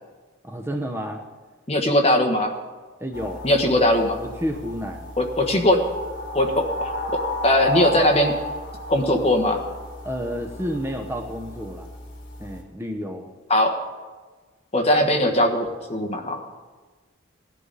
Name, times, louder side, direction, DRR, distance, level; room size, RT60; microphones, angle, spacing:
voice 1, 0.4-1.2 3.0-3.4 4.2-5.1 10.0-11.9 12.4-13.3, equal, 10° right, 3 dB, 0.8 m, -30 dB
voice 2, 1.7-2.5 3.4-4.1 5.2-5.8 6.3-8.3 8.9-9.6 13.5-13.7 14.7-16.4, left 1 dB, 30° left, 4 dB, 1.3 m, -20 dB
sound 1, 3.1-12.6, equal, 60° left, 3.0 m, -33 dB
18.0 x 11.0 x 4.1 m, 1.4 s
head